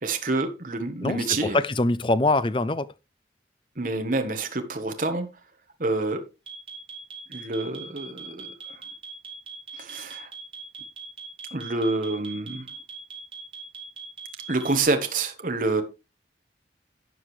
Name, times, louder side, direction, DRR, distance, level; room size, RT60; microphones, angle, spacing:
voice 1, 0.0-1.6 3.8-5.3 5.8-6.2 7.3-8.8 9.8-10.3 11.5-12.7 14.5-15.8, right 3 dB, 50° right, 1.3 m, -27 dB
voice 2, 1.0-2.9, left 2 dB, 30° left, 0.5 m, -23 dB
sound 1, 6.5-14.8, right 6 dB, 30° right, 3.5 m, -40 dB
12.5 x 8.0 x 3.2 m
head